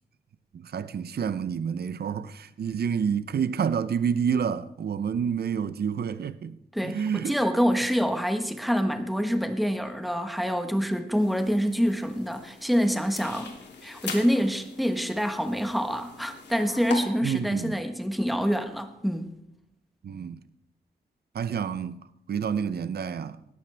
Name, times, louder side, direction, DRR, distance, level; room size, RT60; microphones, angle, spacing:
voice 1, 0.6-6.6 6.8-7.3 17.2-17.8 20.0-20.4 21.3-22.0 22.3-23.4, right 7 dB, 65° right, 0.6 m, -28 dB
voice 2, 6.7-13.5 13.8-19.3, equal, ahead, 1.3 m, -26 dB
sound 1, 11.2-17.0, left 5 dB, 80° left, 3.0 m, -42 dB
19.5 x 15.0 x 3.4 m
wide cardioid pair, 120°, 18 cm